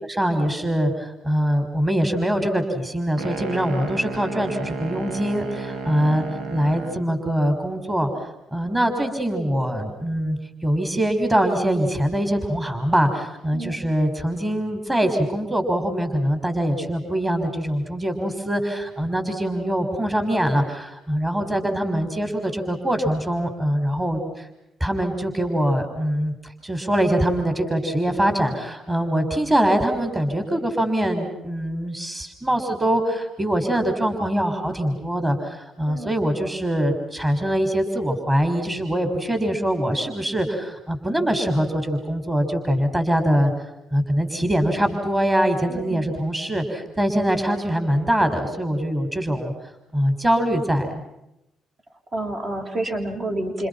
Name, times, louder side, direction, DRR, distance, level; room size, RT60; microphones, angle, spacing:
voice 1, 0.0-6.3 6.5-8.1 8.5-24.5 24.8-26.3 26.6-43.5 43.9-49.5 49.9-51.0, equal, 15° right, 7 dB, 6.2 m, -23 dB
sound 1, 3.2-7.1, right 3 dB, 75° right, 2.4 m, -32 dB
voice 2, 45.7-46.1 52.1-53.7, right 1 dB, 40° right, 3 dB, 6.7 m, -29 dB
30.0 x 29.5 x 5.9 m, 0.88 s
cardioid pair, 90°, 0 cm